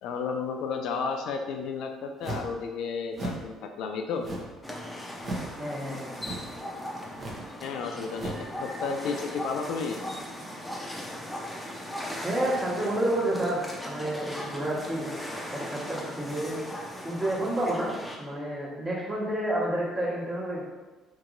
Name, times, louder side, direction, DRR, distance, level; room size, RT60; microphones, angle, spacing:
voice 1, 0.0-4.3 7.6-10.0, left 5 dB, 70° left, 4 dB, 0.3 m, -32 dB
sound 1, 2.2-2.6 3.1-3.5 4.2-4.6 5.2-5.5 6.2-6.6 7.1-7.5 8.1-8.5, right 2 dB, 45° right, 0.7 m, -36 dB
sound 2, 4.6-18.2, left 1 dB, 5° left, 0.6 m, -38 dB
voice 2, 5.6-6.1 12.2-15.1 15.5-16.6 17.0-17.9 18.2-20.6, right 1 dB, 30° right, -6 dB, 1.2 m, -29 dB
2.9 x 2.8 x 2.5 m, 1.2 s
supercardioid pair, 65°, 0 cm